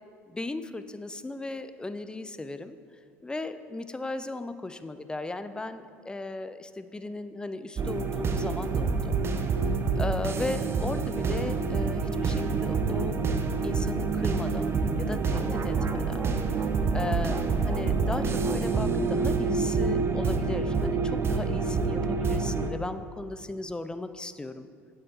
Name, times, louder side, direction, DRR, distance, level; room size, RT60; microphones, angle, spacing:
voice 1, 0.3-2.8 3.2-9.1 10.0-13.2 13.6-16.3 16.5-24.7, left 2 dB, 10° left, 11 dB, 0.5 m, -36 dB
sound 1, 7.8-22.7, right 4 dB, 35° right, 0.8 m, -27 dB
8.7 x 7.8 x 4.5 m, 2.2 s
figure-of-eight pair, 60°, 8 cm